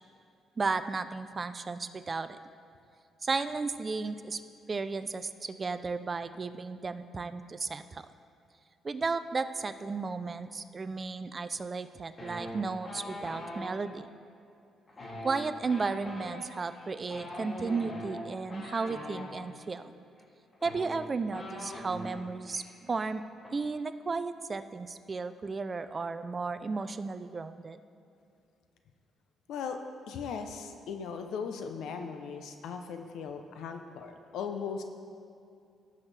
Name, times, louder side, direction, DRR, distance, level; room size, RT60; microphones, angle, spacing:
voice 1, 0.6-2.4 3.2-4.4 4.7-8.1 8.8-14.1 15.2-19.9 20.6-23.2 23.5-27.8, right 4 dB, 35° right, 11 dB, 0.5 m, -34 dB
sound 1, 12.2-13.6 14.9-19.3 20.2-20.3 20.5-22.2 22.5-22.7 23.0-23.5, left 1 dB, 35° left, 2.2 m, -42 dB
voice 2, 30.1-34.8, left 6 dB, 80° left, 6 dB, 0.7 m, -38 dB
16.0 x 6.2 x 3.4 m, 2.5 s
cardioid pair, 90°, 0 cm